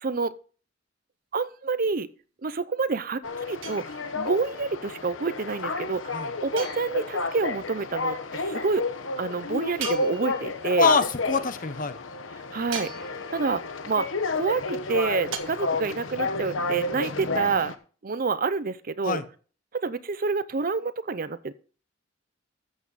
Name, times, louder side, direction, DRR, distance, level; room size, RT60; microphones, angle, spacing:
voice 1, 0.0-0.3 1.3-2.1 2.4-3.2 3.5-8.9 9.2-10.9 12.5-12.9 13.3-14.1 14.3-17.7 18.0-19.2 19.7-21.5, right 4 dB, 45° right, 16 dB, 0.6 m, -28 dB
sound 1, 3.2-17.8, left 3 dB, 90° left, 1.1 m, -31 dB
sound 2, 3.6-4.4 6.6-7.3 9.8-10.7 12.7-13.5 15.3-15.4, right 7 dB, 90° right, 1.7 m, -38 dB
voice 2, 10.8-12.0 19.0-19.2, left 4 dB, 45° left, 12 dB, 0.9 m, -24 dB
13.5 x 8.2 x 4.1 m, 0.40 s
head